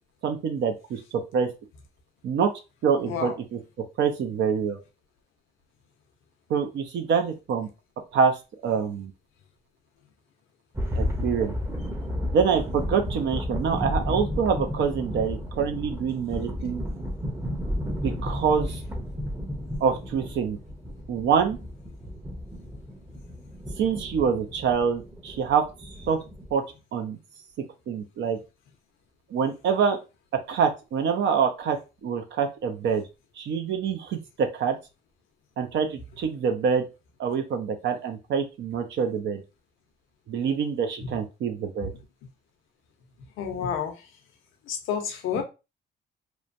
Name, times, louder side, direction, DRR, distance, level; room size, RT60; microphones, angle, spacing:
voice 1, 0.2-1.5 2.2-2.5 2.8-3.6 4.0-4.8 6.5-7.7 8.1-8.4 8.6-9.1 10.9-11.5 12.3-16.8 18.0-18.8 19.8-20.6 21.1-21.6 23.8-26.2 26.5-26.6 26.9-27.2 27.9-28.4 29.3-30.0 30.5-33.0 33.4-34.8 35.6-36.8 37.2-39.4 40.3-41.9 45.3-45.4, right 6 dB, 65° right, 0.6 m, -26 dB
voice 2, 3.1-3.4 41.0-41.1 43.4-44.1 44.6-45.4, left 7 dB, 90° left, 0.7 m, -30 dB
sound 1, 10.7-26.5, left 1 dB, 15° right, 0.6 m, -33 dB
3.0 x 2.1 x 2.5 m
cardioid pair, 90°, 20 cm